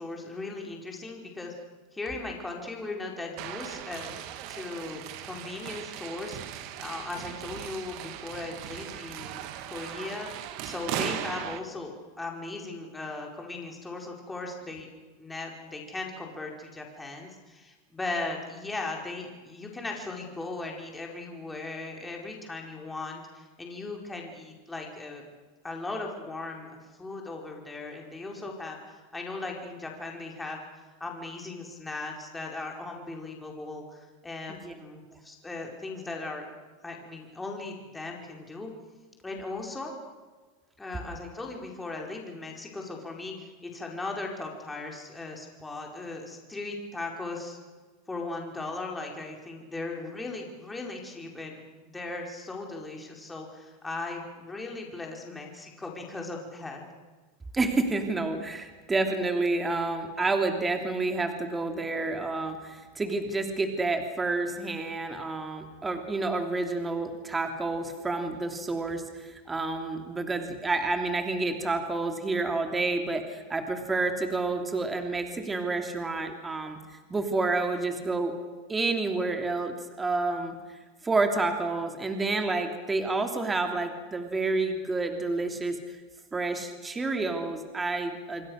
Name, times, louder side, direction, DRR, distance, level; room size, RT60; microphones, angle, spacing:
voice 1, 0.0-1.5 1.9-4.1 4.5-14.9 15.2-25.3 25.6-30.6 31.0-36.4 36.8-38.7 39.2-39.9 40.8-47.6 48.1-56.8, left 3 dB, 10° left, 0 dB, 4.9 m, -38 dB
sound 1, 3.4-11.6, right 11 dB, 55° right, 2.3 m, -38 dB
voice 2, 57.5-76.8 77.1-78.3 78.7-80.6 81.0-86.0 86.3-88.5, right 3 dB, 15° right, 5 dB, 3.0 m, -29 dB
28.0 x 23.0 x 6.6 m, 1.4 s
supercardioid pair, 135°, 0 cm